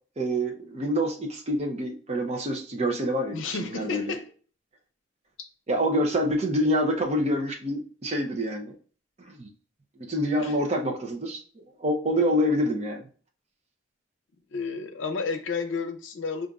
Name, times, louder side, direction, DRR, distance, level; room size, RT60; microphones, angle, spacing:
voice 1, 0.2-4.1 5.7-8.7 9.4-9.5 10.0-11.4 11.8-13.0, equal, 35° right, 0.6 m, -26 dB
voice 2, 3.3-4.3 5.4-5.5 10.4-10.6 14.5-16.5, left 4 dB, 85° left, 0.5 m, -31 dB
5.1 x 2.5 x 2.3 m
head